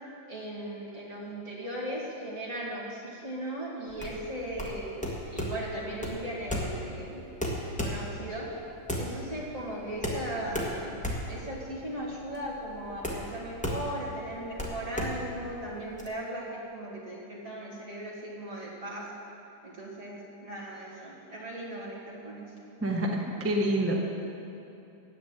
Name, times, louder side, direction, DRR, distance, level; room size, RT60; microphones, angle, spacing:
voice 1, 0.3-7.3 7.7-8.5 9.0-19.1 19.6-22.5, right 1 dB, 45° right, -5 dB, 2.7 m, -38 dB
sound 1, 3.9-16.1, equal, 5° left, 1.3 m, -35 dB
voice 2, 22.8-23.9, right 1 dB, 10° right, -1 dB, 0.6 m, -27 dB
10.0 x 8.7 x 7.8 m, 2.8 s
omnidirectional pair, 2.1 m